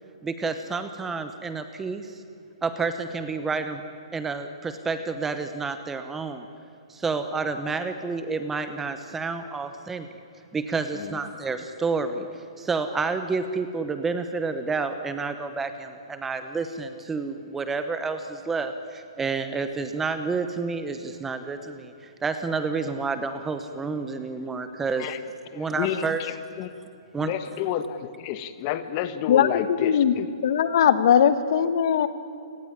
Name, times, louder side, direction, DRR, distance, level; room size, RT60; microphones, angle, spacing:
voice 1, 0.2-2.2 2.6-3.8 4.1-6.5 6.9-10.1 10.5-12.3 12.6-25.1 25.5-26.2 27.1-27.3, right 4 dB, 5° right, 9 dB, 0.9 m, -29 dB
voice 2, 25.5-26.7 27.2-30.2, left 10 dB, 25° left, 13 dB, 1.2 m, -30 dB
voice 3, 29.3-30.1 30.4-32.1, left 8 dB, 45° left, 13 dB, 1.4 m, -20 dB
29.0 x 18.5 x 9.9 m, 2.6 s
hypercardioid pair, 170°, 3 cm